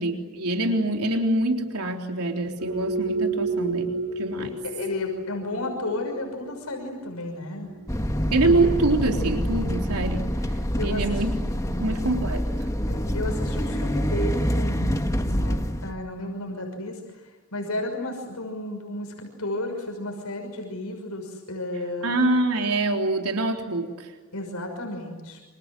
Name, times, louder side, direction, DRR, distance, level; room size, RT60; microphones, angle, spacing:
voice 1, 0.0-4.5 8.3-11.3 11.8-12.4 22.0-24.1, right 2 dB, 85° right, 3 dB, 3.7 m, -25 dB
sound 1, 2.6-8.7, right 3 dB, 60° right, 6.5 m, -31 dB
voice 2, 4.6-7.7 10.8-11.3 11.7-11.9 12.9-17.0 17.5-22.1 24.3-25.4, left 1 dB, 85° left, 3 dB, 6.1 m, -32 dB
sound 2, 7.9-15.9, equal, 15° left, 1.7 m, -26 dB
28.5 x 27.0 x 7.6 m, 1.3 s
head